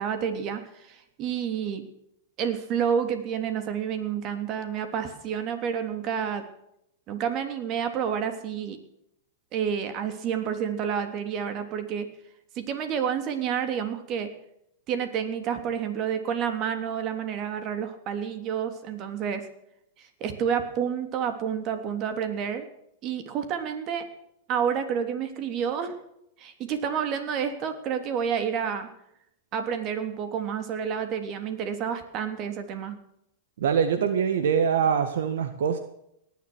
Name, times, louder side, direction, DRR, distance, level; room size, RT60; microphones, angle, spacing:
voice 1, 0.0-1.9 2.4-6.4 7.1-8.8 9.5-12.1 12.5-14.3 14.9-19.4 20.0-22.7 23.0-24.1 24.5-25.9 26.4-28.9 29.5-33.0, right 7 dB, 40° right, 8 dB, 3.2 m, -29 dB
voice 2, 33.6-35.8, right 7 dB, 75° right, 9 dB, 1.7 m, -24 dB
18.5 x 11.5 x 6.3 m, 0.76 s
hypercardioid pair, 115°, 0 cm